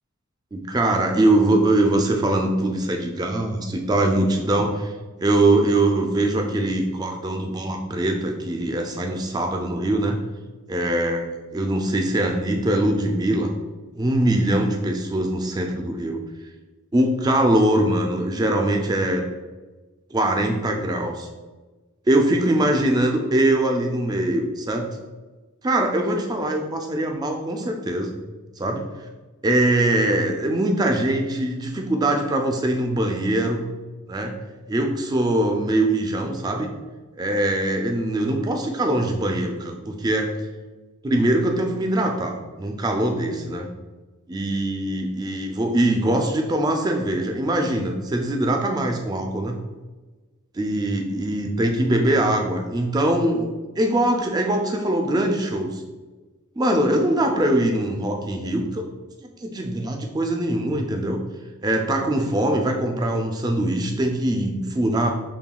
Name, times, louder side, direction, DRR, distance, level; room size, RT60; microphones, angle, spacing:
voice 1, 0.5-4.9 5.2-10.2 10.7-13.5 13.9-16.2 16.9-19.2 20.1-21.3 22.1-24.9 25.6-28.1 28.6-28.9 29.4-33.6 34.1-34.3 34.7-36.7 37.2-40.3 41.0-43.7 44.3-49.6 50.5-53.5 53.8-55.8 56.6-58.8 59.2-61.2 61.6-65.1, right 1 dB, 20° right, 3 dB, 0.3 m, -22 dB
5.7 x 2.3 x 2.3 m, 1.3 s
head